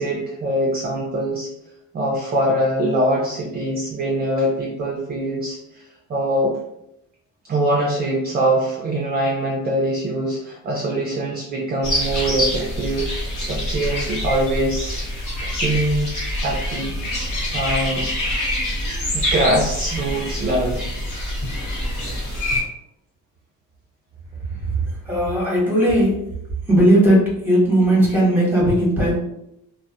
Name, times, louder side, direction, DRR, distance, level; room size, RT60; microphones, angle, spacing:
voice 1, 0.0-1.5 1.9-6.6 7.4-15.0 15.4-16.1 16.4-17.0 17.5-18.0 19.1-20.8, right 1 dB, 30° right, -1 dB, 0.4 m, -23 dB
sound 1, 11.8-22.6, left 1 dB, 70° left, 1.2 m, -25 dB
voice 2, 24.6-26.2 26.7-29.2, right 1 dB, 5° right, -4 dB, 0.9 m, -17 dB
2.2 x 2.0 x 2.7 m, 0.82 s
cardioid pair, 120°, 33 cm